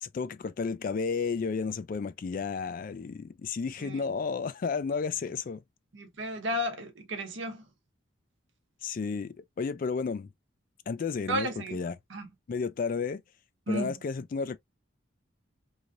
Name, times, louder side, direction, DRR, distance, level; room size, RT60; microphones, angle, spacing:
voice 1, 0.0-5.6 8.8-10.3 10.9-11.9 12.5-13.2 13.7-14.6, left 5 dB, 45° left, 0.3 m, -32 dB
voice 2, 5.9-7.6 11.3-12.3 13.7-13.9, equal, 70° right, 0.9 m, -33 dB
3.1 x 2.7 x 2.4 m
head